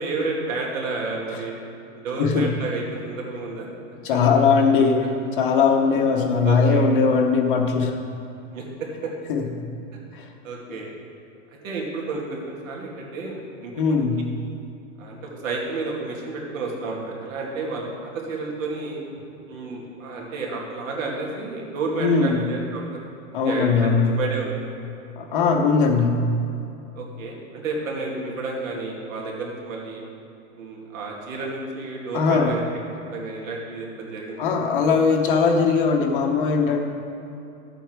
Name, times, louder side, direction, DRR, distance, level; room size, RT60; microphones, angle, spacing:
voice 1, 0.0-1.6 2.0-3.7 4.1-4.2 6.4-6.9 8.5-8.6 9.0-9.1 9.9-10.0 10.4-10.9 11.6-14.0 15.0-19.0 19.5-23.0 23.4-24.6 27.0-30.0 30.5-32.6 33.1-34.5, right 3 dB, 70° right, -2 dB, 2.5 m, -31 dB
voice 2, 2.2-2.5 4.0-5.0 5.4-8.0 9.3-9.7 10.1-10.3 13.7-14.2 22.0-22.4 23.3-24.2 25.2-26.3 32.1-32.5 34.4-36.8, left 5 dB, 40° left, 3 dB, 0.9 m, -20 dB
12.0 x 8.0 x 4.6 m, 2.8 s
supercardioid pair, 175°, 42 cm